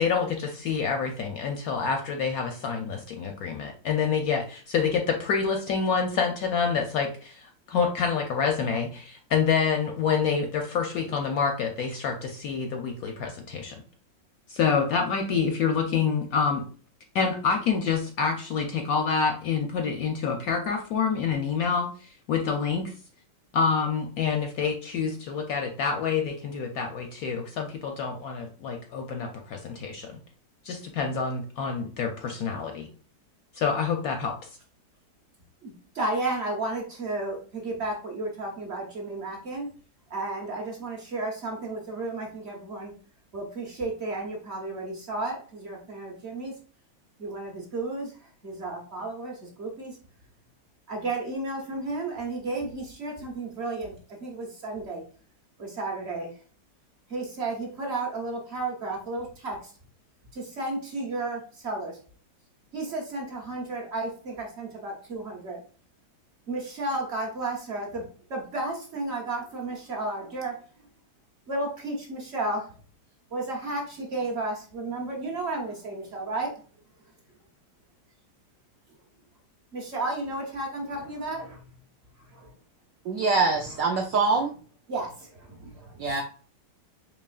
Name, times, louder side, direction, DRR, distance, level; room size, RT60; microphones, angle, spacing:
voice 1, 0.0-13.7 14.5-16.6 17.1-21.9 22.3-22.9 23.5-30.2 30.6-32.9 33.6-34.4, left 6 dB, 70° left, 3 dB, 0.9 m, -27 dB
voice 2, 35.9-39.7 40.1-42.9 43.3-46.5 47.2-48.1 48.4-50.0 50.9-53.9 54.2-55.0 55.6-56.3 57.1-59.7 60.3-62.0 62.7-65.6 66.5-68.0 68.3-70.5 71.5-72.7 73.3-76.5 79.7-81.6 82.3-82.5 84.9-86.0, right 2 dB, 50° right, 0 dB, 0.9 m, -33 dB
voice 3, 83.0-84.5 86.0-86.2, right 4 dB, 90° right, 1 dB, 0.7 m, -24 dB
4.5 x 3.0 x 2.4 m, 0.41 s
omnidirectional pair, 1.9 m